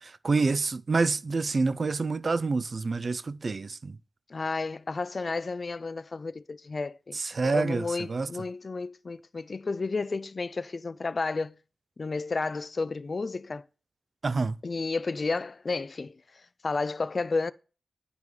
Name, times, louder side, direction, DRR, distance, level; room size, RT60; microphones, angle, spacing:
voice 1, 0.0-4.0 7.1-8.3 14.2-14.6, right 4 dB, 55° right, 0.3 m, -27 dB
voice 2, 4.3-11.5 12.0-13.6 14.6-16.2 16.6-17.5, left 3 dB, 55° left, 0.3 m, -32 dB
9.3 x 5.2 x 3.1 m
cardioid pair, 45°, 0 cm